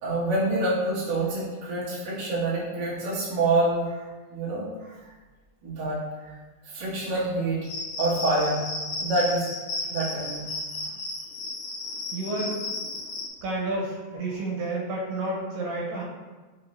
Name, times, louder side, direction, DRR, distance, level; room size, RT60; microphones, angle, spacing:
voice 1, 0.0-4.0 4.3-5.1 5.6-6.3 6.6-7.6 8.0-8.6 9.0-9.4 9.9-10.4, right 2 dB, 55° right, -9 dB, 1.2 m, -27 dB
Cricket, 7.6-13.3, left 2 dB, 75° left, 1.9 m, -33 dB
voice 2, 12.1-12.5 13.4-16.0, right 2 dB, 85° right, -3 dB, 2.3 m, -30 dB
5.1 x 2.7 x 3.0 m, 1.3 s
omnidirectional pair, 3.9 m